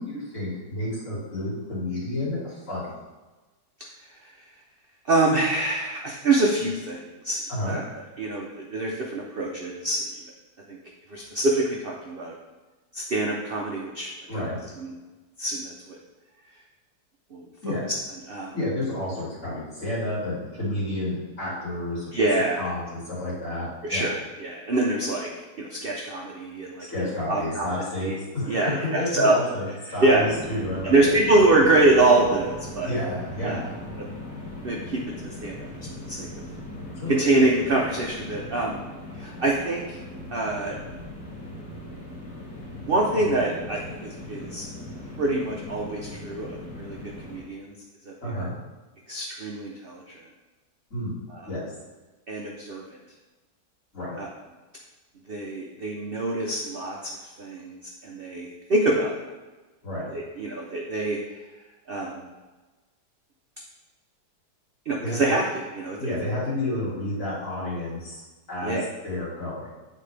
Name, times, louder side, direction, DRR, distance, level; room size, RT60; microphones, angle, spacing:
voice 1, 0.0-2.9 7.5-7.8 14.3-14.6 17.6-17.8 18.5-22.1 22.6-24.1 26.9-31.1 32.8-33.7 37.0-37.1 48.2-48.5 50.9-51.2 51.5-51.7 53.9-54.2 59.8-60.1 65.0-65.2 66.0-68.2 68.5-68.8 69.0-69.7, left 1 dB, 45° left, -8 dB, 2.6 m, -30 dB
voice 2, 5.1-7.4 7.7-10.0 10.7-10.8 11.1-12.3 12.9-14.1 14.8-14.9 15.4-16.0 17.3-17.7 18.3-18.5 22.1-22.6 23.8-25.3 25.6-27.7 28.0-28.1 28.5-29.3 30.0-30.2 30.8-32.9 33.4-33.6 34.0-34.1 34.6-35.7 36.1-36.3 37.1-38.8 39.2-40.0 40.3-40.8 42.8-44.6 45.2-46.5 46.8-47.0 47.3-47.7 48.1-48.5 49.1-50.0 51.3-51.5 52.3-52.8 54.2-54.3 55.3-57.0 57.4-59.1 60.1-61.2 61.9-62.3 64.9-66.0 68.6-68.8, right 2 dB, 60° right, -1 dB, 0.6 m, -25 dB
sound 1, 30.1-47.4, left 1 dB, 10° left, 1.3 m, -39 dB
8.6 x 4.2 x 3.3 m, 1.2 s
omnidirectional pair, 1.8 m